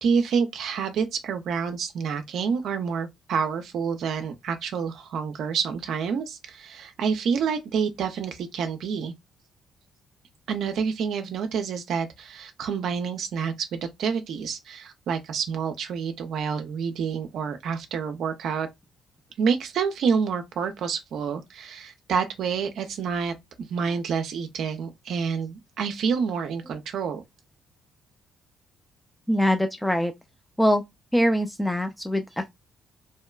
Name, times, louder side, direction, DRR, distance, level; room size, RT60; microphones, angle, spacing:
voice 1, 0.0-9.1 10.5-18.7 19.4-23.3 23.7-27.2, right 6 dB, 70° right, 0.4 m, -28 dB
voice 2, 29.3-30.1 30.6-30.8 31.1-32.5, equal, 5° left, 0.4 m, -23 dB
2.7 x 2.1 x 2.2 m
supercardioid pair, 60°, 0 cm